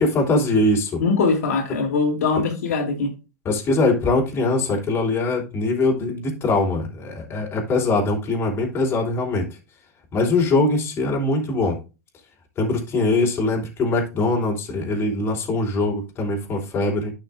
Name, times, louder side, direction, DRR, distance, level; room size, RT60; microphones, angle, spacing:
voice 1, 0.0-1.0 3.4-9.5 10.1-11.8 12.6-17.1, left 2 dB, 30° left, 3.3 m, -22 dB
voice 2, 1.0-3.1, left 4 dB, 90° left, 2.7 m, -22 dB
11.5 x 5.9 x 2.4 m
supercardioid pair, 125°, 8 cm